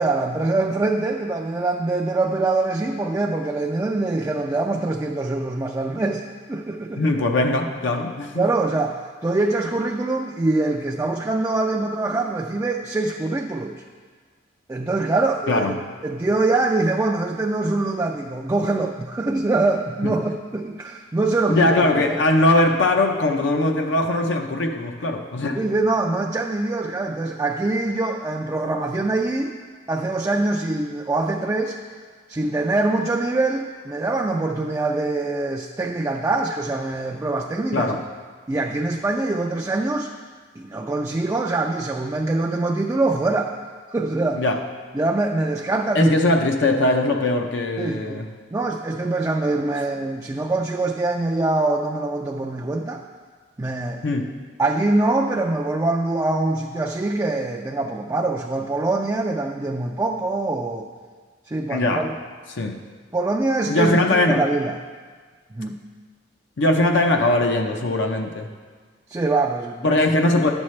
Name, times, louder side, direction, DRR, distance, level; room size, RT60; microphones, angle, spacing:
voice 1, 0.0-6.2 6.5-7.0 8.4-13.8 14.7-21.8 22.1-22.2 25.5-29.5 29.9-31.8 32.3-37.9 38.5-40.1 40.6-43.5 43.9-44.4 44.9-46.1 47.8-48.2 48.5-53.0 53.6-54.0 54.6-60.9 61.5-62.1 63.1-64.8 65.5-65.8 69.1-69.9, right 2 dB, 15° right, 1 dB, 0.3 m, -24 dB
voice 2, 7.0-8.4 15.5-15.7 20.0-20.1 21.5-25.6 37.7-38.0 44.3-44.6 45.9-48.3 54.0-54.3 61.7-62.0 62.5-62.8 63.7-64.4 66.6-68.5 69.8-70.5, left 2 dB, 65° left, 3 dB, 0.6 m, -20 dB
10.5 x 7.1 x 3.2 m, 1.5 s
head